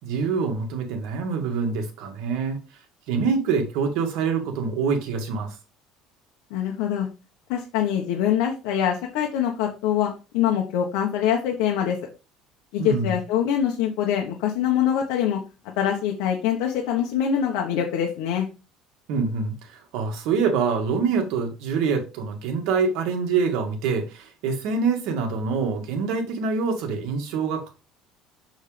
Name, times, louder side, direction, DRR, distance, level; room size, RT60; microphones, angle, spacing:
voice 1, 0.0-2.6 3.1-5.6 12.8-13.2 19.1-27.7, right 5 dB, 70° right, 2.1 m, -25 dB
voice 2, 6.5-7.1 7.5-12.0 12.7-15.4 15.8-18.5, left 9 dB, 80° left, 1.3 m, -24 dB
6.4 x 6.4 x 3.4 m
cardioid pair, 155°, 0 cm